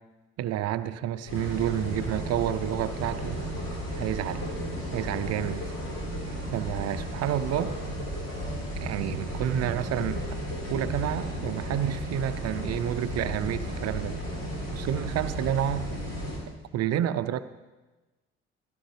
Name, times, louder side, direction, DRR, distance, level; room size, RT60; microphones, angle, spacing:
voice 1, 0.4-3.4 3.9-4.4 4.9-5.6 6.5-7.7 8.8-10.4 10.7-14.2 14.7-15.9 16.7-17.4, right 11 dB, 60° right, 13 dB, 0.6 m, -29 dB
sound 1, 1.3-16.4, equal, 60° left, 4.4 m, -34 dB
15.5 x 11.5 x 3.3 m, 1.2 s
hypercardioid pair, 50°, 29 cm